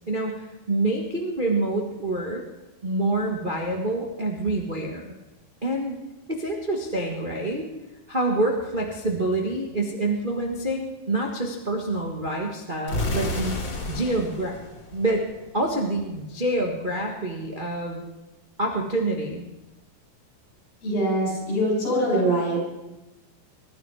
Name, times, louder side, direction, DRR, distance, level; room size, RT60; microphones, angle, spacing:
voice 1, 0.1-2.4 2.8-5.1 5.6-6.0 6.3-7.7 8.1-13.6 13.9-14.5 14.9-15.2 15.5-18.0 18.6-19.4, right 2 dB, 60° right, 0 dB, 0.5 m, -27 dB
sound 1, 12.9-15.7, left 2 dB, 35° left, 2.5 m, -31 dB
voice 2, 20.8-22.6, right 1 dB, 85° left, -2 dB, 8.1 m, -23 dB
23.5 x 12.5 x 4.9 m, 1.0 s
omnidirectional pair, 4.0 m